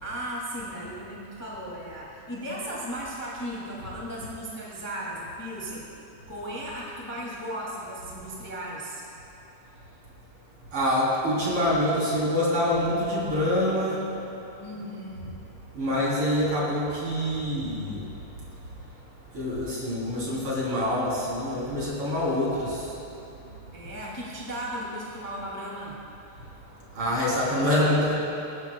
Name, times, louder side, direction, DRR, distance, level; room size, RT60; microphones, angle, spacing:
voice 1, 0.0-5.9 6.3-9.0 14.6-15.3 23.7-26.0, equal, 10° left, -5 dB, 1.4 m, -36 dB
voice 2, 10.7-14.1 15.7-18.1 19.3-22.9 26.9-28.1, left 1 dB, 45° right, -7 dB, 4.2 m, -25 dB
23.0 x 12.5 x 2.3 m, 2.9 s
omnidirectional pair, 3.7 m